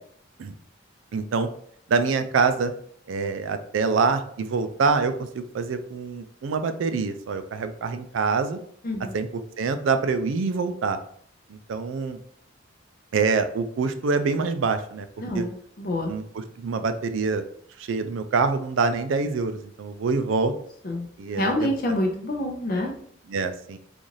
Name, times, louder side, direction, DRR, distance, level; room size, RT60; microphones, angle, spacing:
voice 1, 1.1-1.5 1.9-2.7 3.1-8.6 9.1-9.3 9.6-11.0 11.5-12.2 13.1-15.1 15.3-15.4 16.1-16.2 16.6-17.4 17.9-20.5 21.2-21.5 23.3-23.8, right 4 dB, 75° right, 9 dB, 0.4 m, -25 dB
voice 2, 8.8-9.2 15.2-16.1 20.8-21.1 21.3-22.9, left 1 dB, 45° left, 1 dB, 0.5 m, -27 dB
3.9 x 2.5 x 3.1 m, 0.63 s
head